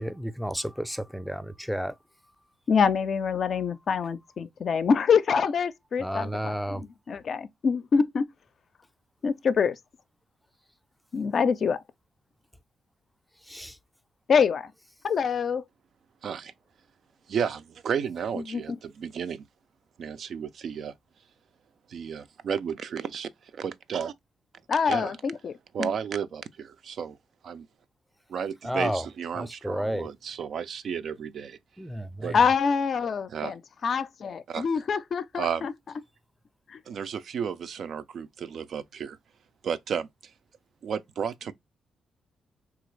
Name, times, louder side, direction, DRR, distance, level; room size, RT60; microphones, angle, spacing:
voice 1, 0.0-2.0 6.0-6.8 13.5-13.8 28.6-29.1 29.4-30.1 31.8-32.4, equal, ahead, 0.4 m, -31 dB
voice 2, 2.7-6.8 7.1-8.3 9.2-9.8 11.1-11.8 14.3-14.7 15.0-15.6 18.5-18.8 24.7-25.5 25.8-25.9 32.3-35.7 36.7-36.8, left 6 dB, 60° left, 0.4 m, -25 dB
voice 3, 16.2-16.5 17.3-19.4 20.0-20.9 21.9-24.1 24.9-25.2 25.7-27.2 27.4-27.7 28.3-31.6 32.2-32.4 33.3-33.5 34.5-34.7 35.3-35.7 36.9-39.2 39.6-40.1 40.8-41.5, right 7 dB, 65° right, 0.3 m, -33 dB
3.1 x 2.4 x 3.1 m
supercardioid pair, 55°, 0 cm